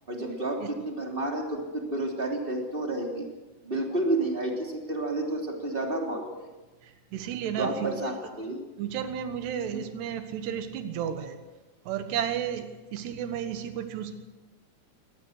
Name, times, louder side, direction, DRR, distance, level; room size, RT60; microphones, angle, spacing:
voice 1, 0.1-3.3 3.6-6.5 7.6-8.6, right 2 dB, 15° right, 1 dB, 2.7 m, -30 dB
voice 2, 6.8-8.1 8.8-11.4 11.9-12.7 12.9-14.2, right 9 dB, 80° right, 8 dB, 3.5 m, -32 dB
22.0 x 18.5 x 6.5 m, 1.2 s
omnidirectional pair, 4.7 m